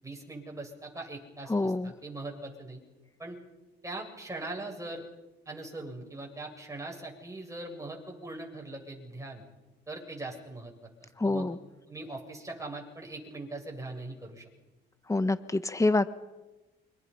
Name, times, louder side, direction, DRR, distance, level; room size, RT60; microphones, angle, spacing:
voice 1, 0.0-2.8 3.2-3.4 3.8-5.0 5.5-9.4 9.9-10.7 11.0-11.5 11.9-14.4, right 2 dB, 15° right, 1 dB, 7.9 m, -41 dB
voice 2, 1.5-1.9 11.2-11.6 15.1-16.1, left 2 dB, 15° left, 12 dB, 1.5 m, -26 dB
28.5 x 25.5 x 5.7 m, 1.1 s
cardioid pair, 90°, 20 cm